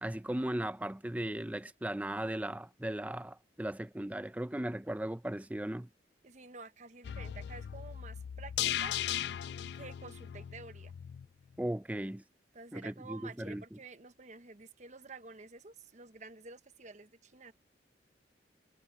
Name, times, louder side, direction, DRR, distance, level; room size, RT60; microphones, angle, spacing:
voice 1, 0.0-5.9 11.6-12.2 12.7-13.6, right 1 dB, 10° right, 0.5 m, -37 dB
voice 2, 6.2-9.2 9.7-10.9 12.5-17.5, right 4 dB, 40° right, 1.0 m, -50 dB
sound 1, 7.0-11.3 11.6-11.7, left 11 dB, 65° left, 0.3 m, -37 dB
head